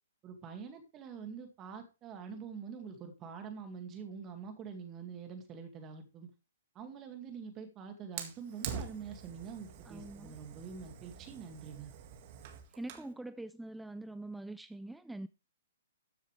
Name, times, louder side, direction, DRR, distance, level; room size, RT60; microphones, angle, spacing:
voice 1, 0.2-6.3 6.7-11.9, right 6 dB, 25° right, 2.1 m, -46 dB
Fire, 8.2-13.1, right 8 dB, 45° right, 1.9 m, -45 dB
voice 2, 9.9-10.4 12.7-15.3, right 2 dB, 5° right, 0.4 m, -44 dB
13.0 x 7.3 x 3.3 m
hypercardioid pair, 130°, 0 cm